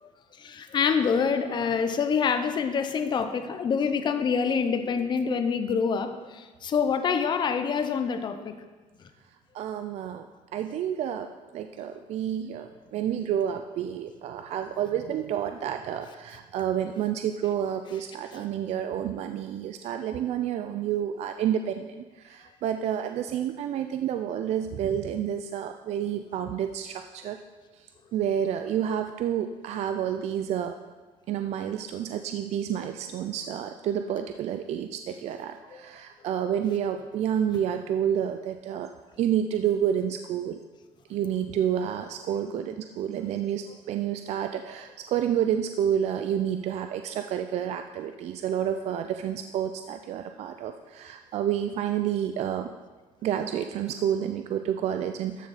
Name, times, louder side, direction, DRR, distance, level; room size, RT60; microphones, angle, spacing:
voice 1, 0.4-8.5 35.7-35.8, left 6 dB, 35° left, 8 dB, 0.7 m, -26 dB
voice 2, 9.5-10.3 10.5-11.3 11.5-27.4 28.1-30.8 31.3-38.9 39.2-40.6 41.1-52.7 53.2-55.5, right 9 dB, 55° right, 7 dB, 0.5 m, -29 dB
13.0 x 6.5 x 4.1 m, 1.3 s
cardioid pair, 140°, 13 cm